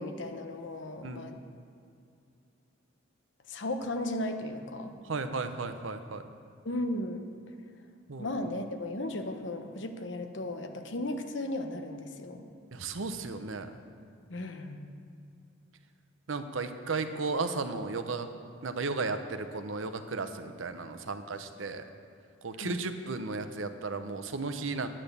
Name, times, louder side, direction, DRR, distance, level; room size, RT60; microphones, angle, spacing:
voice 1, 0.0-1.4 3.5-5.0 6.6-7.2 8.2-12.4 14.3-14.8 22.6-22.8, left 1 dB, 65° left, 6 dB, 1.0 m, -35 dB
voice 2, 5.0-6.2 8.1-8.3 12.7-13.8 16.3-18.3 18.6-21.9 22.4-24.9, right 3 dB, 80° right, 9 dB, 0.8 m, -34 dB
9.8 x 8.7 x 6.8 m, 2.5 s
head